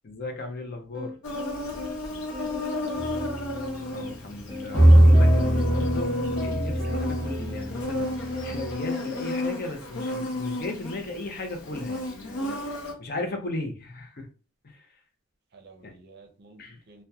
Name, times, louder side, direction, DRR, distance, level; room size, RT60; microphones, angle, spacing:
voice 1, 0.0-1.1 3.9-12.6 13.0-14.3 14.6-14.9 15.8-15.9 16.6-16.8, left 2 dB, 45° left, 0.5 m, -36 dB
sound 1, 0.9-9.6, left 3 dB, 5° right, 1.3 m, -39 dB
Insect, 1.2-12.9, left 1 dB, 90° left, 0.6 m, -33 dB
voice 2, 2.1-3.4 15.5-16.6 16.9-17.0, right 3 dB, 50° right, 0.5 m, -52 dB
sound 2, 3.0-3.8 4.7-8.7, right 1 dB, 15° left, 0.7 m, -21 dB
2.7 x 2.1 x 2.3 m
head